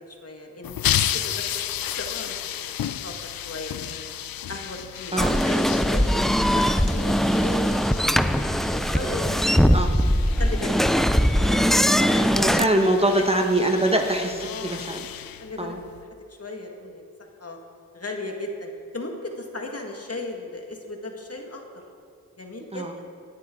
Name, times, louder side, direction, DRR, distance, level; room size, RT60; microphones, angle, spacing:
voice 1, 0.0-2.8 3.0-4.1 4.5-6.1 6.5-8.4 8.7-10.0 10.4-11.1 11.4-11.7 11.9-12.3 12.8-13.2 14.4-14.8 15.4-15.7 16.3-17.0 17.4-17.6 17.9-21.8 22.4-23.1, left 2 dB, 45° left, 2 dB, 2.0 m, -37 dB
sound 1, 0.6-16.0, left 10 dB, 85° left, 0.5 m, -33 dB
sound 2, 5.2-12.7, equal, ahead, 0.5 m, -21 dB
voice 2, 12.3-15.1 15.6-15.8 22.7-22.9, right 1 dB, 15° right, 3 dB, 1.4 m, -23 dB
19.5 x 9.9 x 3.9 m, 2.3 s
cardioid pair, 45°, 34 cm